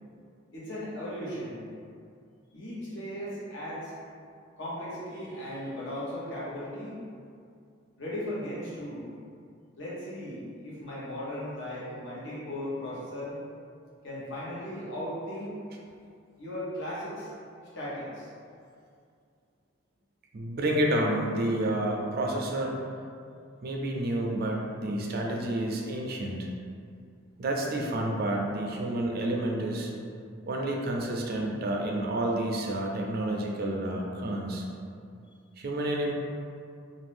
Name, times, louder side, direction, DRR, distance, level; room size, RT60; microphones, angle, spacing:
voice 1, 0.5-1.6 2.5-3.9 4.6-7.0 8.0-9.1 9.8-13.4 14.0-15.6 16.4-17.3 17.7-18.3, left 1 dB, 65° left, -8 dB, 0.9 m, -37 dB
voice 2, 20.3-22.7 23.6-26.5 27.4-29.9 30.5-34.6 35.6-36.1, right 1 dB, 50° right, 0 dB, 0.4 m, -29 dB
2.6 x 2.5 x 3.4 m, 2.3 s
head